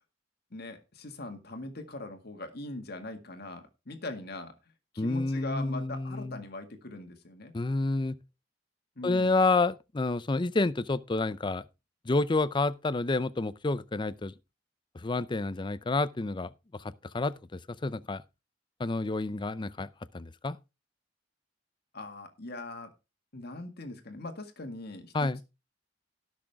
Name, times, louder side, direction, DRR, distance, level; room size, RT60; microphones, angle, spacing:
voice 1, 0.5-4.5 4.9-7.5 9.0-9.4 21.9-22.9 23.3-25.4, left 2 dB, 60° left, 1.9 m, -41 dB
voice 2, 5.0-6.4 7.5-8.2 9.0-11.6 12.1-14.3 14.9-18.2 18.8-19.9 20.1-20.6 25.1-25.4, left 3 dB, 25° left, 0.5 m, -29 dB
18.0 x 6.3 x 3.5 m
head